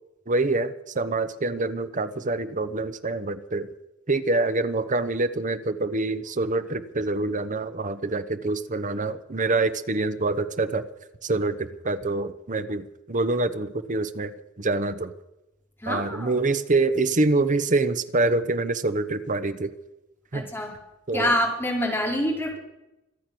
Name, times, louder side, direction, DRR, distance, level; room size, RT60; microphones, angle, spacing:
voice 1, 0.3-3.7 4.1-10.9 11.2-15.1 15.9-19.7 20.3-20.4 21.1-21.3, right 2 dB, 40° right, 11 dB, 1.0 m, -26 dB
voice 2, 15.8-16.3 20.3-20.8 21.1-22.6, left 1 dB, 10° left, -1 dB, 4.2 m, -26 dB
25.5 x 8.6 x 6.2 m, 0.93 s
head